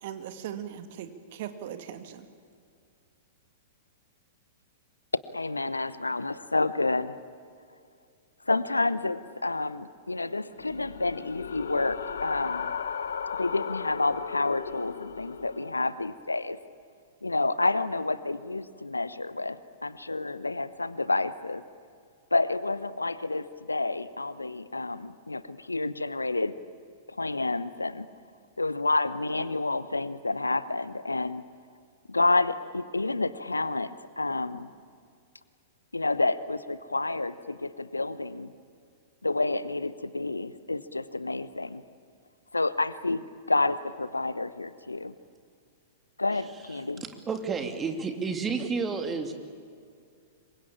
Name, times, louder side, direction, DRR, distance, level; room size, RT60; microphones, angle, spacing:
voice 1, 0.0-2.3, right 10 dB, 50° right, 8 dB, 2.3 m, -39 dB
voice 2, 5.3-7.2 8.5-12.7 13.3-16.6 17.2-21.6 22.3-26.5 27.1-28.1 28.6-31.4 32.1-34.7 35.9-38.5 39.2-41.8 42.5-45.1 46.2-47.0, left 2 dB, 85° left, 16 dB, 1.0 m, -29 dB
sound 1, 10.6-15.7, left 6 dB, 70° left, 1.4 m, -35 dB
voice 3, 47.0-49.3, right 5 dB, 20° right, 6 dB, 2.9 m, -31 dB
26.5 x 23.5 x 8.8 m, 2.3 s
figure-of-eight pair, 105°, 0 cm